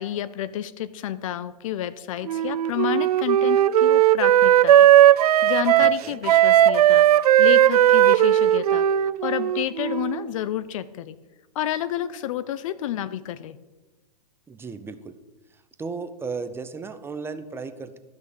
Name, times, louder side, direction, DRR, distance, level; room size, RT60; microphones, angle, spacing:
voice 1, 0.0-4.9 5.2-7.1 7.4-11.2 11.5-13.6, left 11 dB, 55° left, 15 dB, 0.7 m, -30 dB
Wind instrument woodwind instrument, 2.3-10.3, right 11 dB, 70° right, 0.4 m, -17 dB
voice 2, 5.8-6.2 14.5-15.2 15.8-18.0, right 4 dB, 10° right, 10 dB, 0.8 m, -35 dB
12.5 x 6.2 x 7.0 m, 1.2 s
hypercardioid pair, 110°, 20 cm